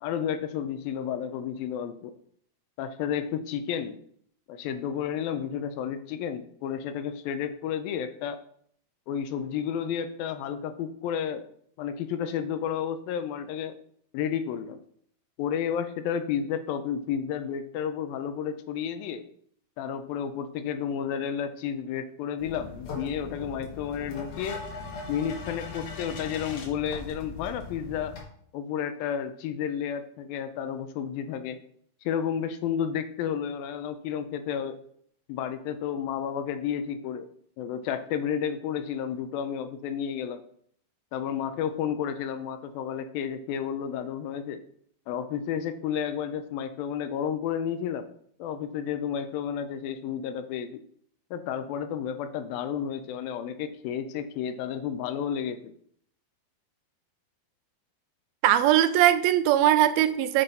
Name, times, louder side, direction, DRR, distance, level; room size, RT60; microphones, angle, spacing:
voice 1, 0.0-2.1 2.8-4.0 4.5-8.4 9.1-11.4 11.8-13.7 14.1-14.8 15.4-19.2 19.8-24.6 25.1-28.2 28.5-31.6 32.0-34.8 35.3-37.3 37.6-40.4 41.1-44.6 45.1-48.1 48.4-50.7 51.3-55.7, left 8 dB, 80° left, 9 dB, 2.3 m, -31 dB
sound 1, 22.4-28.2, left 4 dB, 60° left, 3.1 m, -39 dB
voice 2, 58.4-60.4, right 12 dB, 80° right, 13 dB, 2.3 m, -20 dB
7.8 x 5.8 x 5.5 m, 0.64 s
omnidirectional pair, 4.4 m